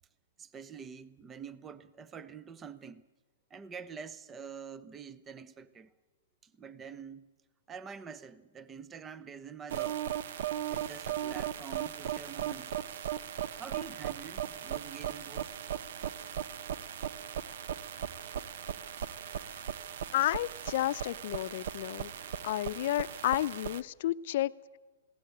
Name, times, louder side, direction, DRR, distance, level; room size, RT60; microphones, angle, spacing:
voice 1, 0.4-3.1 3.5-5.9 6.4-7.3 7.7-10.1 10.7-12.8 13.6-15.6, right 6 dB, 15° right, 0.7 m, -46 dB
sound 1, 9.7-23.8, right 10 dB, 65° right, 0.9 m, -38 dB
voice 2, 20.1-22.1 22.4-24.8, left 14 dB, 55° left, 0.7 m, -31 dB
21.0 x 17.0 x 8.8 m
hypercardioid pair, 155°, 0 cm